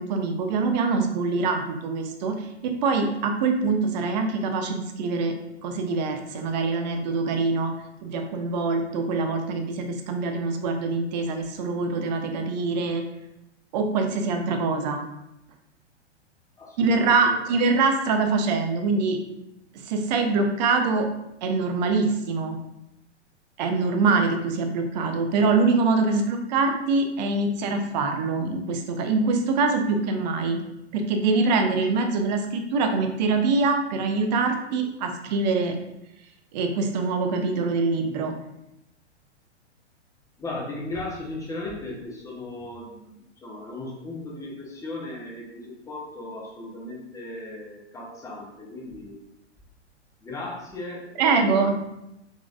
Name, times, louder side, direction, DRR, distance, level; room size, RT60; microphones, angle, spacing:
voice 1, 0.0-2.5 2.8-5.3 5.6-7.7 8.0-13.0 13.7-15.0 16.8-19.2 19.8-21.1 21.4-22.6 23.6-30.6 30.9-35.7 36.5-38.3 51.2-51.8, right 4 dB, 40° right, 5 dB, 0.6 m, -24 dB
voice 2, 16.6-17.4 40.4-49.2 50.2-51.7, left 2 dB, 10° left, -3 dB, 0.7 m, -37 dB
3.6 x 3.6 x 2.3 m, 0.86 s
figure-of-eight pair, 110°, 35 cm